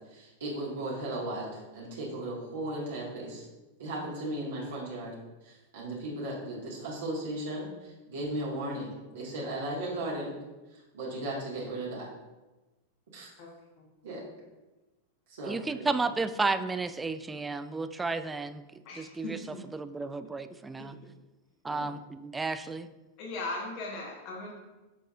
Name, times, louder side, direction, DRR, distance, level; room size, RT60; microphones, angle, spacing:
voice 1, 0.1-3.4 3.8-5.2 5.4-10.3 10.7-12.1 13.1-13.3 14.0-14.2 15.3-15.9 21.7-21.9, right 1 dB, 60° right, -6 dB, 1.9 m, -36 dB
voice 2, 13.4-13.9 18.8-19.6 20.8-20.9 23.2-24.5, left 2 dB, 45° left, -2 dB, 1.3 m, -39 dB
voice 3, 15.4-18.6 19.0-19.4 19.7-21.0 21.6-22.9, right 3 dB, 10° right, 12 dB, 0.4 m, -32 dB
8.4 x 6.6 x 2.5 m, 1.1 s
figure-of-eight pair, 90°, 0 cm